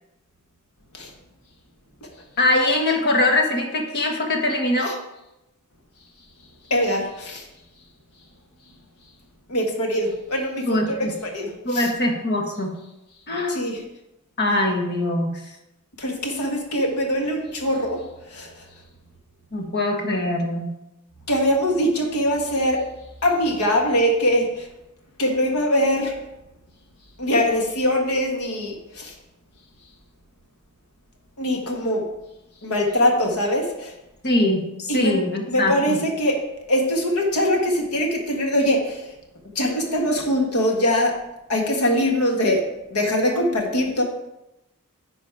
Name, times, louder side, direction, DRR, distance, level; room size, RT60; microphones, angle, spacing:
voice 1, 2.4-5.0 10.6-11.1 11.6-12.7 13.3-13.7 14.4-15.3 19.5-20.7 34.2-36.0, left 1 dB, 50° left, 2 dB, 1.5 m, -22 dB
voice 2, 6.7-7.4 9.5-11.9 13.5-13.8 16.0-18.0 18.3-18.5 21.3-22.9 23.2-24.7 25.2-26.1 27.2-29.1 31.4-32.1 32.6-33.9 34.9-35.1 35.5-39.0 39.5-41.2 41.5-44.0, equal, 75° left, 2 dB, 1.6 m, -22 dB
10.5 x 4.3 x 4.7 m, 0.91 s
head